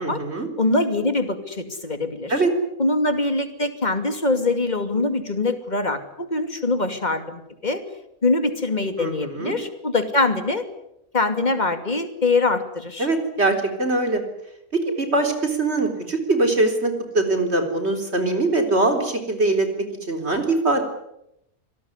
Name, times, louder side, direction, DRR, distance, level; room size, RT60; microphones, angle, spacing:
voice 1, 0.0-0.5 2.3-2.5 9.0-9.5 13.0-14.2 14.7-20.8, right 2 dB, 45° right, 5 dB, 4.1 m, -22 dB
voice 2, 0.6-2.3 2.8-7.8 8.2-10.6 11.1-13.1, left 2 dB, 30° left, 8 dB, 2.7 m, -23 dB
26.0 x 18.5 x 9.8 m, 0.82 s
omnidirectional pair, 1.6 m